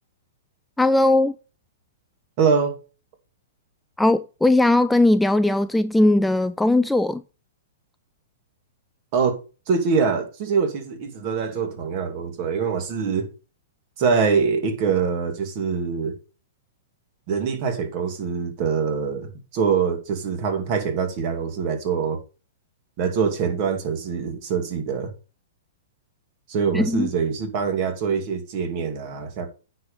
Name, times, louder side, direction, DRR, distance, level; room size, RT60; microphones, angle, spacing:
voice 1, 0.8-1.3 4.0-7.2 26.7-27.1, left 2 dB, 5° left, 0.3 m, -19 dB
voice 2, 2.4-2.8 9.1-9.4 9.7-13.3 14.0-16.1 17.3-22.2 23.0-25.1 26.5-29.5, right 6 dB, 40° right, 2.5 m, -24 dB
9.4 x 4.8 x 5.3 m
hypercardioid pair, 140°, 0 cm